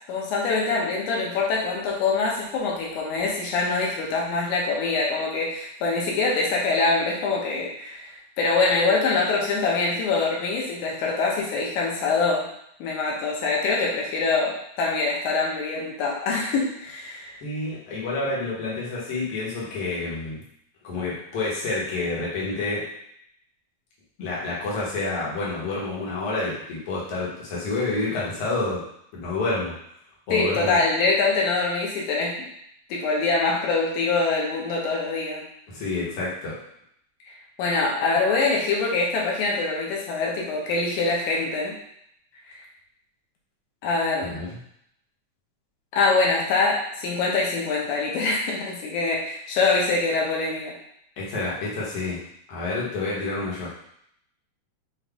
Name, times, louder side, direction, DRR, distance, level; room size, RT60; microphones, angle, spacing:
voice 1, 0.1-8.1 8.4-12.4 12.8-17.3 30.3-32.3 32.9-35.5 37.6-41.8 43.8-44.4 45.9-50.7, left 3 dB, 90° left, -2 dB, 2.3 m, -24 dB
voice 2, 17.4-20.4 20.8-22.8 24.2-28.8 29.1-29.7 30.3-30.8 35.7-36.6 44.3-44.6 51.2-52.2 52.5-53.7, left 2 dB, 55° left, -6 dB, 2.1 m, -28 dB
6.0 x 2.5 x 3.5 m, 0.72 s
omnidirectional pair, 3.3 m